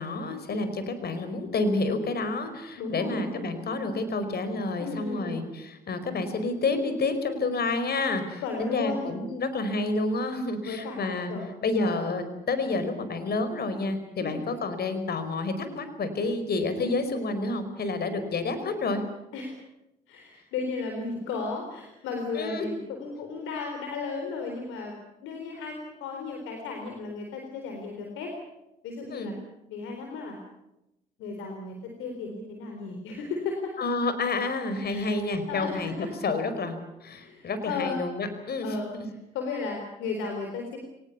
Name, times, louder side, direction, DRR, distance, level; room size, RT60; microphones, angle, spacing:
voice 1, 0.0-11.3 11.6-19.0 22.3-22.8 29.1-29.3 33.8-35.9 36.2-39.1, left 3 dB, 50° left, 10 dB, 4.9 m, -29 dB
voice 2, 2.8-3.4 4.8-5.4 8.4-9.2 10.6-11.0 11.3-11.5 11.8-12.1 14.2-14.4 19.3-19.5 20.1-25.0 25.2-28.3 28.8-29.3 29.7-30.4 31.2-33.7 34.9-35.2 35.5-36.1 37.1-38.0 38.6-38.9 39.3-40.8, left 4 dB, 75° left, 3 dB, 4.1 m, -34 dB
23.5 x 19.5 x 8.5 m, 0.91 s
hypercardioid pair, 55°, 20 cm